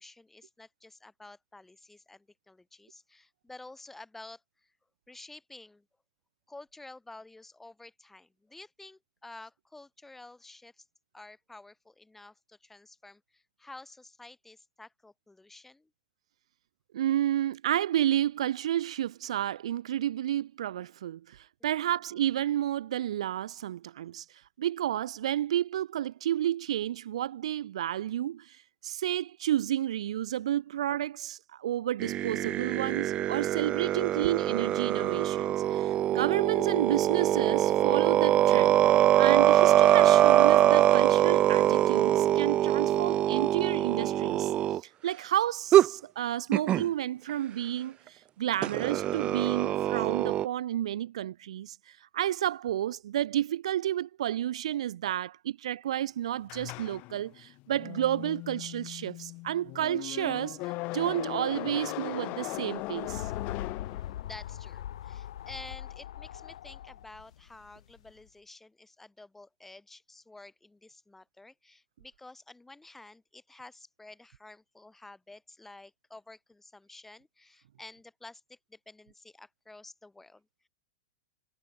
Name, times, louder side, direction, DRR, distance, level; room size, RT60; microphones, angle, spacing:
voice 1, 0.0-4.7 5.1-5.8 6.5-10.8 11.1-15.9 21.6-21.9 36.1-36.2 42.9-43.3 64.2-80.7, left 2 dB, 5° left, 7.6 m, -51 dB
voice 2, 16.9-24.2 24.6-38.7 39.1-44.5 44.8-63.3, right 11 dB, 70° right, 1.2 m, -31 dB
sound 1, 32.0-44.8 45.7-45.9 46.5-46.9 48.6-50.5, right 12 dB, 30° right, 0.8 m, -23 dB
sound 2, 56.5-64.5, left 23 dB, 45° left, 1.2 m, -38 dB
sound 3, 62.7-68.2, left 11 dB, 70° left, 7.7 m, -41 dB
hypercardioid pair, 110°, 3 cm